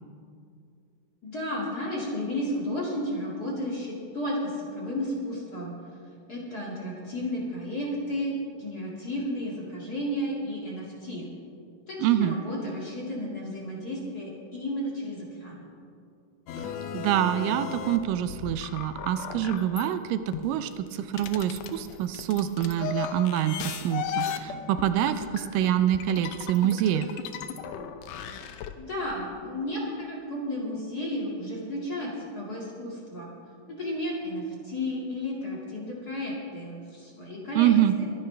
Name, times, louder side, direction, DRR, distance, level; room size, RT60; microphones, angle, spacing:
voice 1, 1.2-5.7 6.3-11.3 11.9-15.6 28.8-33.3 33.7-37.7 38.0-38.1, left 1 dB, 30° left, -4 dB, 2.1 m, -33 dB
voice 2, 12.0-12.4 16.6-27.1 37.6-37.9, right 11 dB, 80° right, 10 dB, 2.2 m, -26 dB
sound 1, 16.5-19.9 20.3-28.7, left 8 dB, 85° left, 1.5 m, -36 dB
24.0 x 10.5 x 3.3 m, 2.4 s
omnidirectional pair, 3.9 m